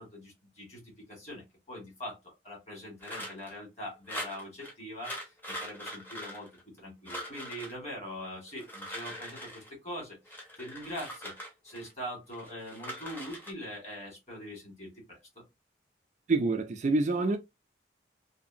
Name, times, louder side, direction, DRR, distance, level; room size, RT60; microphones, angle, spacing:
voice 1, 0.0-11.3 11.6-15.4, equal, 35° left, 1.6 m, -43 dB
sound 1, 3.0-3.6 4.1-4.7 5.0-6.8 7.1-7.7 8.5-9.7 10.3-11.9 12.3-13.5, equal, 10° left, 0.7 m, -42 dB
voice 2, 16.3-17.4, right 3 dB, 40° right, 0.4 m, -26 dB
2.7 x 2.6 x 2.5 m
head